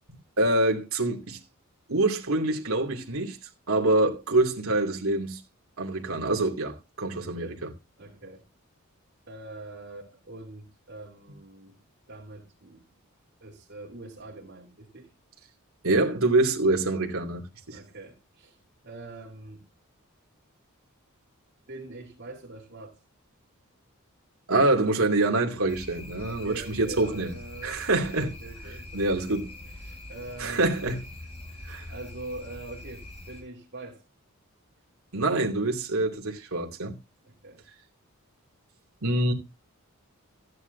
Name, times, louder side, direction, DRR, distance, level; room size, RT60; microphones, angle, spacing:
voice 1, 0.4-1.4 1.9-3.4 3.7-5.4 5.8-7.7 15.8-17.8 24.5-27.3 27.6-28.3 28.9-29.5 30.4-31.0 31.6-31.9 35.1-37.0 39.0-39.3, right 2 dB, 75° right, 2.6 m, -25 dB
voice 2, 7.1-7.6 8.0-8.5 9.3-11.8 12.1-12.8 13.4-15.1 17.7-18.6 18.8-19.6 21.7-23.0 26.2-30.7 31.4-34.0 37.2-37.6, right 2 dB, 50° right, 3.0 m, -44 dB
sound 1, 25.7-33.4, left 1 dB, 25° left, 4.8 m, -43 dB
15.5 x 10.5 x 2.7 m
head